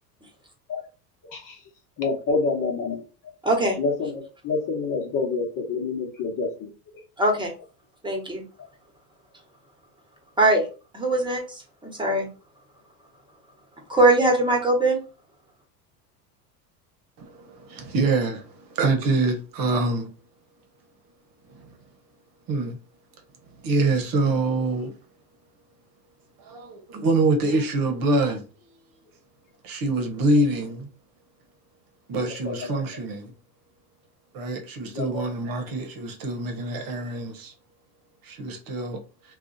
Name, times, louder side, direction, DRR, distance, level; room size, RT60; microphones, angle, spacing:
voice 1, 1.2-1.6 2.0-3.0 3.8-6.7 32.4-32.8 34.9-35.1, left 4 dB, 40° left, 1.2 m, -27 dB
voice 2, 3.4-3.8 7.2-7.5 8.0-8.4 10.4-10.6 10.9-11.4 11.8-12.3 13.9-15.0, right 2 dB, 10° right, 1.2 m, -20 dB
voice 3, 17.2-20.1 21.5-21.7 22.5-22.8 23.6-24.9 26.5-28.4 29.6-30.9 32.1-33.3 34.3-37.5 38.2-39.0, right 2 dB, 45° right, 1.0 m, -25 dB
2.4 x 2.4 x 4.0 m
hypercardioid pair, 95°, 48 cm